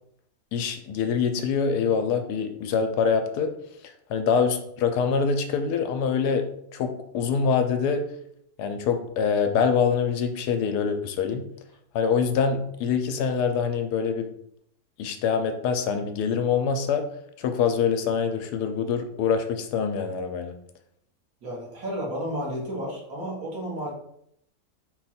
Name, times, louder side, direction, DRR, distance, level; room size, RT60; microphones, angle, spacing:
voice 1, 0.5-3.5 3.8-6.4 6.7-8.1 8.6-11.5 11.9-14.3 15.0-17.0 17.4-20.6, left 6 dB, 85° left, 7 dB, 1.2 m, -25 dB
voice 2, 21.4-23.9, equal, 65° right, -3 dB, 1.6 m, -32 dB
4.5 x 2.3 x 4.1 m, 0.71 s
omnidirectional pair, 1.7 m